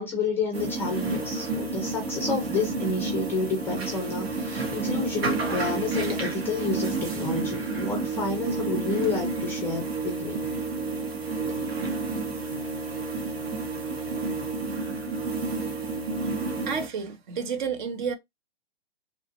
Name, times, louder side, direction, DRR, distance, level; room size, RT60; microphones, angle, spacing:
voice 1, 0.0-10.4, left 3 dB, 5° left, 0.5 m, -30 dB
sound 1, 0.5-16.9, right 3 dB, 80° right, 1.3 m, -30 dB
voice 2, 16.7-18.1, right 6 dB, 50° right, 0.9 m, -30 dB
3.1 x 2.3 x 2.7 m
hypercardioid pair, 145°, 30 cm